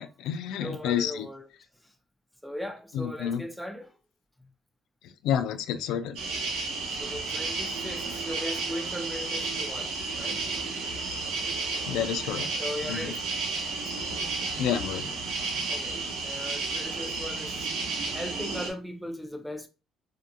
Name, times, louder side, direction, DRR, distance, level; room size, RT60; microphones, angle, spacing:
voice 1, 0.0-1.3 2.9-3.4 5.2-6.2 11.9-12.5 12.9-13.0 14.6-15.2, left 9 dB, 80° left, 0.3 m, -29 dB
voice 2, 0.6-1.5 1.8-1.9 2.4-3.9 7.0-9.9 10.2-10.4 12.6-13.2 15.7-17.7 18.1-19.7, left 1 dB, ahead, 0.5 m, -38 dB
sound 1, 6.2-18.7, right 3 dB, 85° right, 0.8 m, -32 dB
2.7 x 2.4 x 2.2 m
cardioid pair, 115°, 0 cm